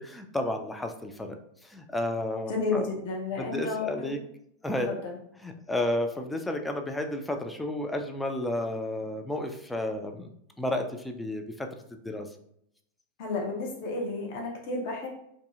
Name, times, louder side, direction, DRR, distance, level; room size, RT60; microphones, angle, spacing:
voice 1, 0.0-1.4 1.6-2.9 3.4-4.2 4.6-4.9 5.4-11.7 12.0-12.3, left 1 dB, 5° left, 4 dB, 0.3 m, -32 dB
voice 2, 2.5-4.2 4.9-5.2 13.2-15.1, left 3 dB, 50° left, 0 dB, 0.7 m, -32 dB
2.6 x 2.5 x 2.4 m, 0.73 s
figure-of-eight pair, 90°, 0 cm